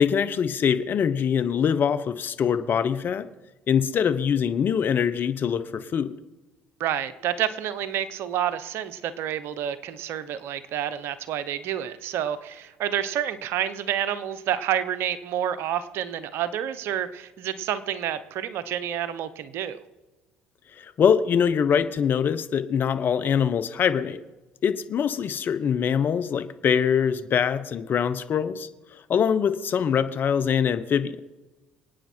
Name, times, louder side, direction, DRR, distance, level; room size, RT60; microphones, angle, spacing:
voice 1, 0.0-3.3 3.7-6.1 20.8-24.2 24.6-28.7 29.1-31.2, left 7 dB, 50° left, 12 dB, 1.1 m, -23 dB
voice 2, 6.8-19.8, right 10 dB, 65° right, 14 dB, 1.0 m, -29 dB
26.5 x 9.2 x 4.6 m, 1.1 s
hypercardioid pair, 65°, 4 cm